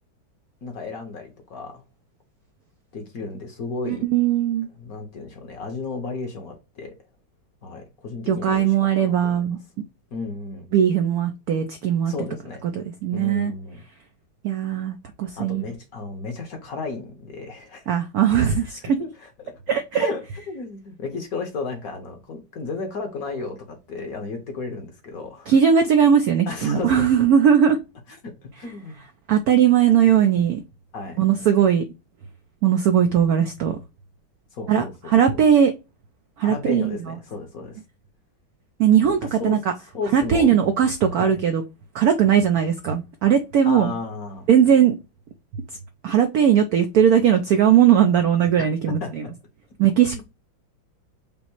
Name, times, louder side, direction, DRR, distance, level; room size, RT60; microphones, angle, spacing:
voice 1, 0.6-1.8 2.9-4.1 4.8-7.0 7.6-9.5 10.1-10.7 12.0-12.6 13.1-13.8 15.4-18.0 18.8-19.1 19.4-19.6 19.9-25.5 26.5-27.1 28.2-29.0 30.9-31.2 34.5-35.4 36.4-37.8 39.2-39.6 39.9-40.5 41.1-41.4 43.6-44.5 48.6-49.3 50.0-50.2, left 3 dB, 55° left, 1.2 m, -33 dB
voice 2, 3.9-4.7 8.3-9.6 10.7-12.1 12.7-13.5 14.4-15.7 17.9-19.0 19.7-20.1 25.5-27.8 29.3-30.6 31.2-31.8 32.6-33.8 34.7-35.7 36.4-37.1 38.8-39.6 40.1-41.6 41.9-43.9 44.5-45.0 46.0-49.2 49.8-50.1, right 8 dB, 85° right, 0.8 m, -19 dB
5.4 x 2.0 x 4.3 m
omnidirectional pair, 2.2 m